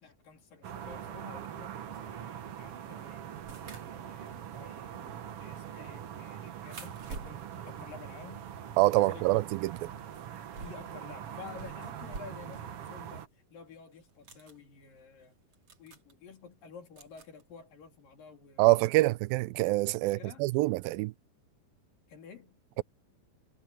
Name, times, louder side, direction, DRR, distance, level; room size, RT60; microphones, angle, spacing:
voice 1, 0.0-3.3 3.6-8.5 9.0-9.4 10.6-15.3 15.8-19.1 20.0-20.5 22.1-22.6, left 5 dB, 70° left, 5.0 m, -51 dB
sound 1, 0.6-13.3, right 9 dB, 60° right, 1.6 m, -43 dB
sound 2, 3.4-8.9 9.2-12.8 13.1-13.2 14.0-14.6 15.2-15.3 15.5-16.1 17.0-17.4 18.8-18.9 20.0-20.1, right 4 dB, 40° right, 4.2 m, -50 dB
voice 2, 8.8-9.9 18.6-21.1, right 20 dB, 85° right, 2.3 m, -26 dB
omnidirectional pair, 4.1 m